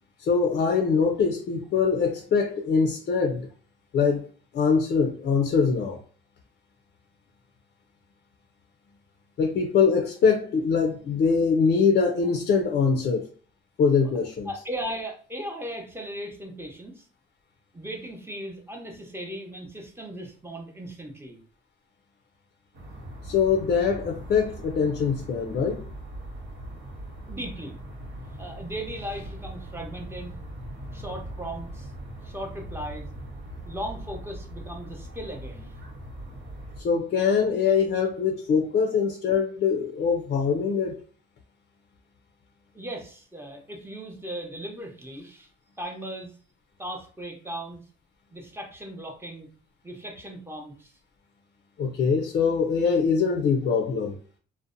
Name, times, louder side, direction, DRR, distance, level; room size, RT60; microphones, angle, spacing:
voice 1, 0.2-3.5 3.9-4.3 4.5-6.0 9.4-13.3 13.8-14.5 23.2-25.8 36.8-41.0 51.8-54.1, left 5 dB, 55° left, 0.4 m, -23 dB
voice 2, 14.5-17.1 17.7-21.4 27.3-27.7 28.4-30.3 30.9-31.9 32.2-33.1 33.6-35.7 42.7-45.5 45.8-46.3 46.8-47.8 48.3-49.5 49.8-50.9, right 1 dB, 10° right, 0.7 m, -37 dB
sound 1, 22.7-36.8, right 1 dB, 75° right, 0.8 m, -40 dB
2.6 x 2.1 x 2.5 m
cardioid pair, 90°, 20 cm